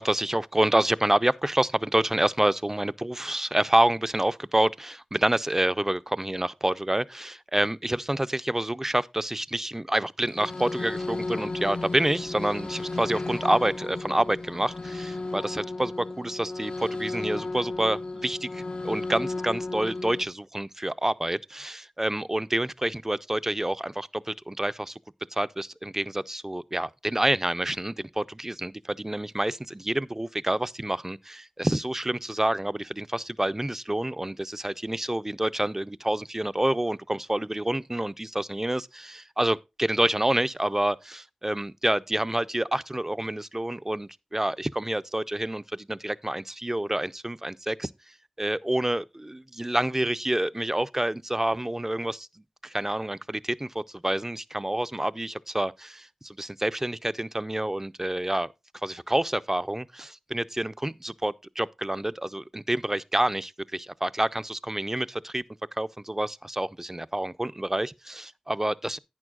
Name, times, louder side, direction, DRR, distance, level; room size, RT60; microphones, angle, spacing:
voice 1, 0.0-24.9 25.3-47.9 48.4-52.3 52.6-58.5 58.8-65.4 65.8-69.0, right 1 dB, 20° right, 0.4 m, -28 dB
sound 1, 10.3-20.2, left 2 dB, 55° left, 0.5 m, -34 dB
11.0 x 9.4 x 2.3 m
wide cardioid pair, 60°, 2 cm